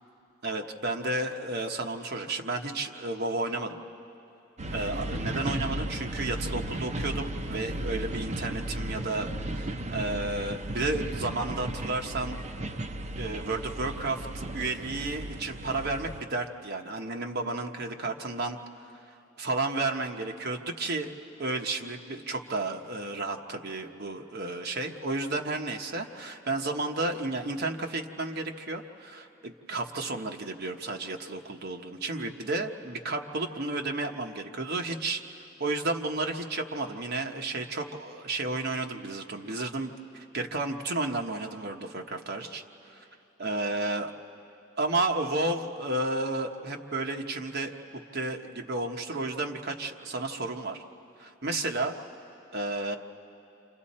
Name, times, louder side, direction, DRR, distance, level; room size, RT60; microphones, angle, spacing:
voice 1, 0.4-3.8 4.7-12.4 13.2-18.8 19.4-21.1 21.4-42.6 42.9-43.1 43.4-44.1 44.8-50.8 51.2-51.9 52.5-53.0, right 2 dB, 55° right, 3 dB, 1.1 m, -32 dB
sound 1, 4.6-16.2, right 1 dB, 35° right, 0.7 m, -35 dB
29.5 x 26.5 x 4.3 m, 2.9 s
head